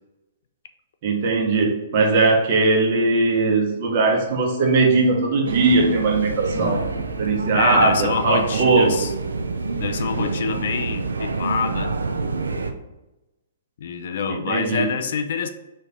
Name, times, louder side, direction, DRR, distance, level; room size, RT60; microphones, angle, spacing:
voice 1, 1.0-6.9 7.2-9.1 14.3-14.8, right 3 dB, 50° right, 0 dB, 1.1 m, -19 dB
sound 1, 4.9-5.1 6.4-9.5 11.1-11.4, left 2 dB, 30° left, 1.3 m, -37 dB
sound 2, 5.4-12.7, right 3 dB, 90° right, 0.5 m, -27 dB
voice 2, 7.5-9.1 9.8-12.0 12.5-12.6 13.8-15.5, left 6 dB, 65° left, 8 dB, 0.5 m, -26 dB
3.4 x 3.2 x 4.1 m, 0.98 s
hypercardioid pair, 130°, 0 cm